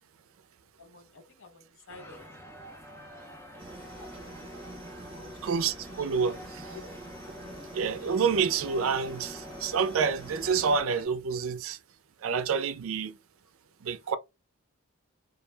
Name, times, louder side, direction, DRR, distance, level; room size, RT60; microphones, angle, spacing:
voice 1, 0.8-2.3 3.9-4.4 5.0-5.5 6.7-6.9 7.4-7.7 14.0-14.1, left 3 dB, 65° left, 0.7 m, -52 dB
sound 1, 1.9-11.0, equal, 10° left, 0.4 m, -48 dB
sound 2, 3.6-10.8, right 1 dB, 25° right, 0.7 m, -45 dB
voice 2, 5.4-6.7 7.7-11.8 12.2-13.2 13.8-14.2, right 5 dB, 70° right, 0.4 m, -28 dB
2.3 x 2.1 x 3.2 m
head